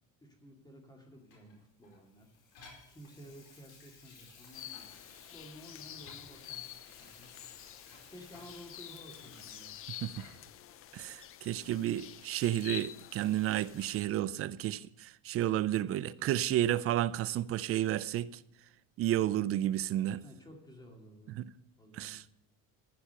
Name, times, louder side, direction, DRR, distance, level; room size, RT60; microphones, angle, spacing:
voice 1, 0.2-7.4 8.1-9.7 20.2-21.4 21.8-22.2, equal, 10° left, 2.2 m, -54 dB
Water tap faucet / Sink (filling or washing), 1.3-10.6 11.1-11.2, left 4 dB, 75° left, 4.8 m, -56 dB
sound 1, 4.5-14.1, left 11 dB, 35° left, 0.4 m, -48 dB
voice 2, 10.9-18.4 19.0-20.2 21.4-21.5 21.9-22.2, right 13 dB, 40° right, 0.4 m, -31 dB
14.5 x 5.8 x 6.7 m
cardioid pair, 140°, 37 cm